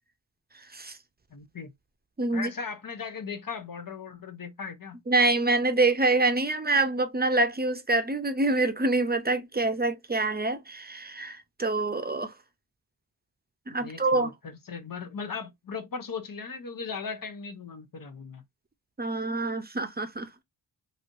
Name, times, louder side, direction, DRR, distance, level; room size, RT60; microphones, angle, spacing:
voice 1, 1.3-1.7 2.3-5.0 13.7-18.4, left 5 dB, 50° left, 0.8 m, -38 dB
voice 2, 2.2-2.5 5.1-12.3 13.7-14.3 19.0-20.3, right 2 dB, 25° right, 0.6 m, -26 dB
3.1 x 2.7 x 2.5 m
cardioid pair, 55°, 42 cm